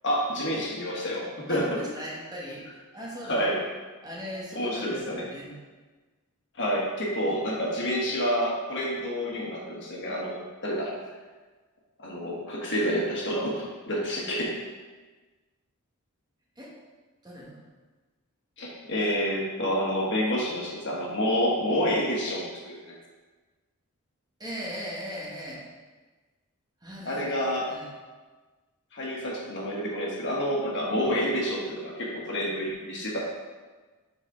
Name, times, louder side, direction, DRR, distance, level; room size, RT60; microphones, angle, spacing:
voice 1, 0.0-1.8 3.2-3.6 4.5-5.2 6.6-10.9 12.0-14.5 18.6-23.0 27.0-27.7 28.9-33.2, equal, 55° left, -3 dB, 1.5 m, -28 dB
voice 2, 1.5-2.6 2.9-3.4 4.0-5.5 16.6-16.7 17.2-17.6 24.4-25.6 26.8-27.2 27.7-27.9, equal, 20° right, -5 dB, 1.3 m, -38 dB
6.4 x 4.1 x 4.9 m, 1.3 s
head